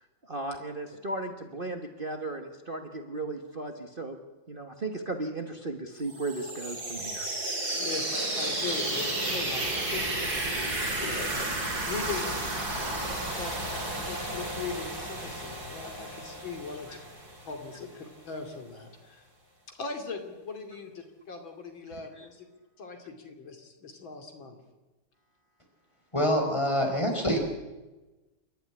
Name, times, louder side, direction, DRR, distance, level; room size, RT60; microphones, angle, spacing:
voice 1, 0.2-4.2 4.5-7.3 10.5-10.6 13.0-13.1 13.5-13.7 16.9-17.0 21.9-22.3, right 2 dB, 30° right, 4 dB, 1.5 m, -36 dB
sound 1, 6.1-17.8, right 2 dB, 50° right, 5.5 m, -32 dB
voice 2, 7.8-10.1 11.0-11.5 11.9-12.3 12.8-17.0 17.4-19.3 19.7-22.5 22.8-24.6, left 4 dB, 85° left, 5 dB, 3.4 m, -40 dB
voice 3, 26.1-27.4, equal, 15° left, 3 dB, 4.2 m, -25 dB
28.0 x 12.5 x 9.8 m, 1.1 s
omnidirectional pair, 2.1 m